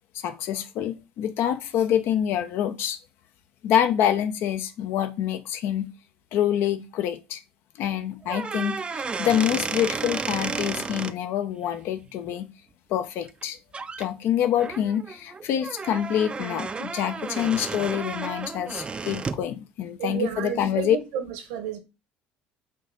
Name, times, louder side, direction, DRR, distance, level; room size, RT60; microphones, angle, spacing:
voice 1, 0.1-3.0 3.6-5.9 6.3-7.4 7.8-12.5 12.9-13.6 14.0-21.0, left 10 dB, 65° left, 0.5 m, -26 dB
sound 1, 8.2-11.1 13.3-13.4 13.7-14.1 14.6-19.5, right 4 dB, 25° right, 0.4 m, -32 dB
voice 2, 20.0-21.8, right 8 dB, 80° right, 1.0 m, -31 dB
3.8 x 2.7 x 3.7 m
hypercardioid pair, 75°, 4 cm